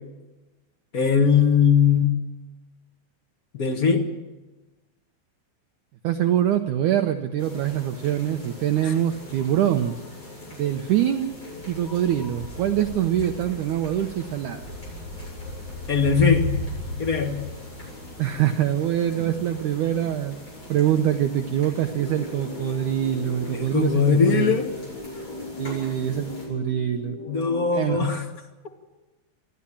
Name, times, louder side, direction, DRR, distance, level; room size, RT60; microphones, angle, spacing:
voice 1, 0.9-2.2 3.5-4.1 15.9-16.5 17.0-17.4 23.5-24.7 27.3-28.2, left 6 dB, 65° left, 2 dB, 0.9 m, -20 dB
voice 2, 6.0-9.9 10.5-11.3 11.7-14.7 18.2-20.4 20.7-24.6 25.6-27.2 27.7-28.1, right 11 dB, 75° right, 6 dB, 1.9 m, -24 dB
sound 1, 7.4-26.5, left 1 dB, 25° left, 8.6 m, -38 dB
sound 2, 21.8-27.8, left 1 dB, 45° left, 1.6 m, -38 dB
27.5 x 12.0 x 8.6 m, 1.1 s
omnidirectional pair, 4.4 m